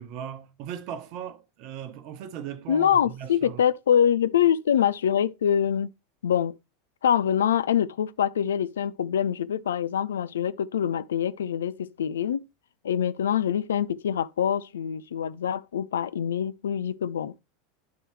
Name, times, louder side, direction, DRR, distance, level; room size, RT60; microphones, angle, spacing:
voice 1, 0.0-3.6, right 9 dB, 50° right, 0.9 m, -38 dB
voice 2, 2.7-5.9 6.2-6.5 7.0-12.4 12.8-17.4, left 9 dB, 75° left, 0.3 m, -25 dB
10.5 x 4.6 x 3.1 m
figure-of-eight pair, 85°, 0 cm